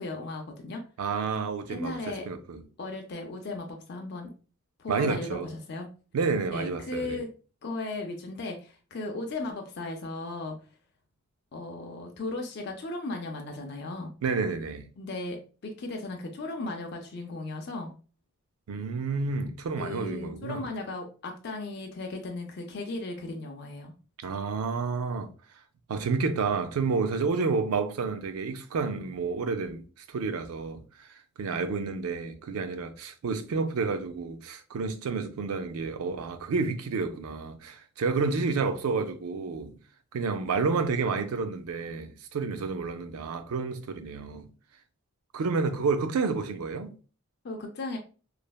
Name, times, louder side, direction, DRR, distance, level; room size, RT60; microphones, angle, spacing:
voice 1, 0.0-0.8 1.7-2.3 2.8-4.3 4.8-5.3 5.7-5.9 6.5-7.3 7.6-10.6 11.5-14.1 15.0-17.9 19.8-23.9 47.4-48.0, left 2 dB, 50° left, 0.4 m, -36 dB
voice 2, 1.0-2.6 4.9-5.5 6.1-7.2 14.2-14.8 18.7-20.6 24.2-25.3 25.9-39.8 40.1-44.5 45.3-46.9, right 4 dB, 80° right, 0.4 m, -30 dB
3.1 x 2.0 x 2.2 m
head